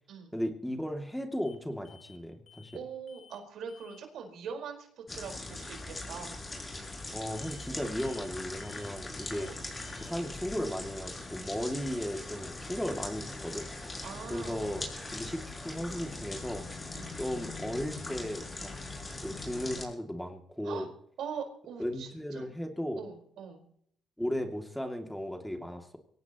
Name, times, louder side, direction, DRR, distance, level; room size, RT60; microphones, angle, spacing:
voice 1, 0.3-2.7 7.1-9.5 10.0-13.7 14.3-14.9 15.1-16.6 17.2-18.7 19.2-20.9 21.8-23.0 24.2-26.0, equal, 5° left, 4 dB, 2.5 m, -36 dB
sound 1, 1.4-1.6 1.8-2.2 2.5-2.8 3.1-3.4 3.7-4.0 7.4-7.7 8.0-8.3 8.6-8.9 9.2-9.5 9.8-10.1, left 7 dB, 55° left, 2.7 m, -57 dB
voice 2, 2.7-6.4 9.4-9.6 14.0-14.8 16.9-17.2 20.6-20.9 21.2-22.5 22.9-23.6, right 6 dB, 75° right, 3 dB, 4.7 m, -42 dB
sound 2, 5.1-19.8, left 2 dB, 25° left, 7.0 m, -41 dB
23.5 x 17.5 x 3.1 m, 0.67 s
cardioid pair, 90°, 0 cm